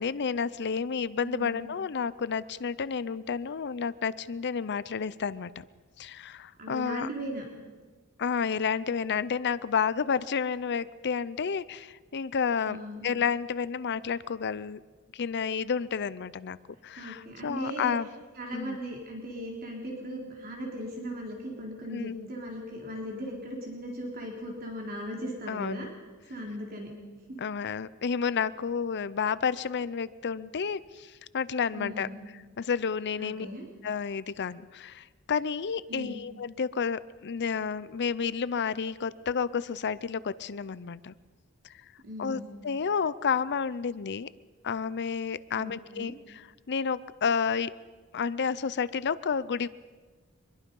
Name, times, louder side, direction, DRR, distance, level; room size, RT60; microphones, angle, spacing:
voice 1, 0.0-5.6 6.0-7.1 8.2-14.8 15.1-16.6 16.8-18.1 18.5-18.8 21.9-22.3 25.5-25.9 27.4-32.1 32.6-33.5 33.8-41.1 42.2-44.3 44.6-47.7 48.1-49.7, left 6 dB, 55° left, 17 dB, 0.6 m, -31 dB
voice 2, 1.2-1.7 6.6-7.4 12.7-13.1 17.0-17.9 18.4-25.9 26.3-26.9 27.3-27.4 31.7-32.2 33.2-33.7 35.9-36.2 42.0-42.5 45.5-46.1, equal, 45° right, -1 dB, 3.9 m, -38 dB
24.5 x 22.0 x 5.4 m, 1.4 s
head